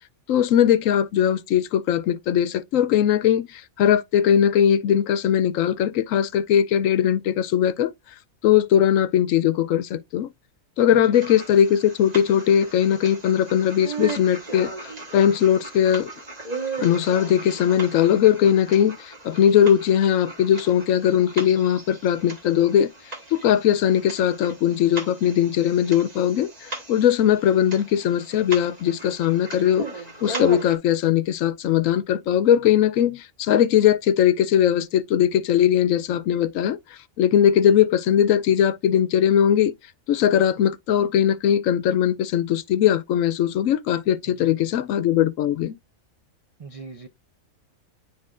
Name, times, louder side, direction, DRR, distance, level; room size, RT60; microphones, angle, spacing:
voice 1, 0.3-7.9 8.4-10.3 10.8-16.1 16.8-22.9 23.3-29.9 30.2-36.8 37.2-39.7 40.1-45.8, left 10 dB, 75° left, 1.0 m, -20 dB
sound 1, 11.1-30.8, right 3 dB, 30° right, 1.5 m, -37 dB
voice 2, 46.6-47.1, right 4 dB, 65° right, 0.3 m, -41 dB
9.6 x 4.2 x 2.4 m
omnidirectional pair, 1.4 m